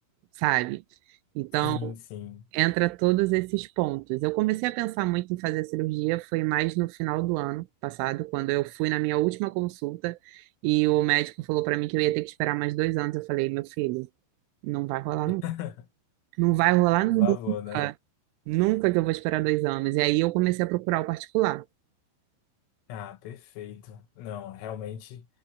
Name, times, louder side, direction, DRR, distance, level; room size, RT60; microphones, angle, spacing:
voice 1, 0.4-0.8 1.4-1.9 2.5-14.1 14.6-15.4 16.4-17.9 18.5-21.7, right 20 dB, 85° right, 3.2 m, -26 dB
voice 2, 1.6-2.5 15.3-15.9 17.0-17.9 22.9-25.3, left 10 dB, 85° left, 4.2 m, -37 dB
omnidirectional pair, 5.7 m